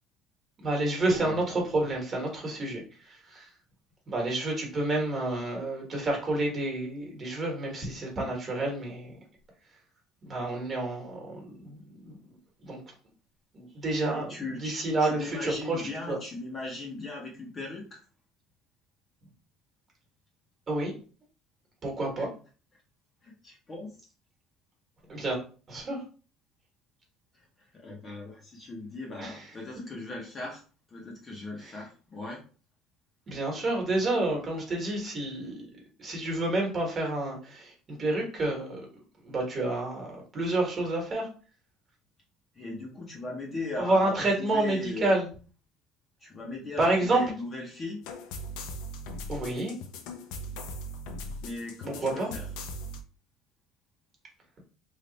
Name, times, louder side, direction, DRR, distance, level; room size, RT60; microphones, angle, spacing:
voice 1, 0.6-3.5 4.1-9.1 10.2-12.2 12.6-12.8 13.5-14.3 14.6-16.2 20.7-20.9 21.8-22.3 25.1-25.4 25.7-26.0 29.2-29.4 31.6-31.7 33.3-35.6 36.0-38.8 39.2-41.3 43.8-45.3 46.8-47.2 49.3-49.7 51.8-52.3, right 2 dB, 25° right, 0 dB, 1.2 m, -29 dB
voice 2, 14.1-18.0 22.2-22.3 23.2-24.0 27.3-27.5 27.7-30.6 30.9-32.4 42.5-45.1 46.2-48.0 51.4-52.5, left 3 dB, 20° left, -2 dB, 0.7 m, -39 dB
sound 1, 48.0-53.0, equal, 80° left, 0.6 m, -39 dB
3.3 x 2.4 x 3.9 m, 0.37 s
cardioid pair, 170°, 0 cm